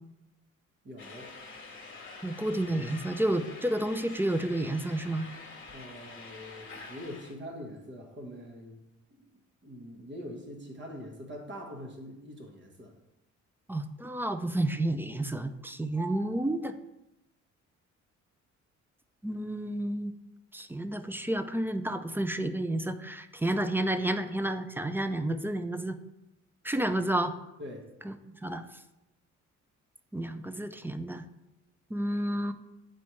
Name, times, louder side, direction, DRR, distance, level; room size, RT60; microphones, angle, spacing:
voice 1, 0.8-1.4 5.7-8.8 9.1-9.2 9.6-12.9 27.6-28.0, equal, 40° right, 1 dB, 1.4 m, -44 dB
sound 1, 1.0-7.3, left 3 dB, 40° left, 1.2 m, -47 dB
voice 2, 2.2-5.3 13.7-16.8 19.2-20.1 20.5-26.0 26.6-27.3 28.0-28.1 28.4-28.7 30.1-31.2 31.9-32.5, right 1 dB, 10° right, 9 dB, 0.3 m, -30 dB
7.0 x 4.3 x 3.1 m, 0.91 s
cardioid pair, 90°, 30 cm